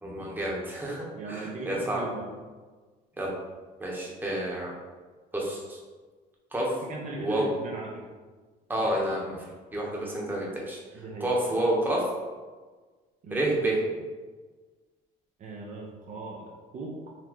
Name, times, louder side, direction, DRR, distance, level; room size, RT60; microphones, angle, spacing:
voice 1, 0.0-2.0 3.2-3.3 3.8-4.7 5.3-5.8 6.5-6.8 7.2-7.5 8.7-9.4 9.7-10.8 11.2-12.0 13.3-13.8, right 1 dB, 10° right, -4 dB, 1.0 m, -29 dB
voice 2, 1.2-2.3 6.9-8.1 10.9-11.3 13.2-13.5 15.4-17.2, right 3 dB, 50° right, -2 dB, 0.6 m, -38 dB
4.1 x 2.7 x 2.9 m, 1.4 s
cardioid pair, 110°, 17 cm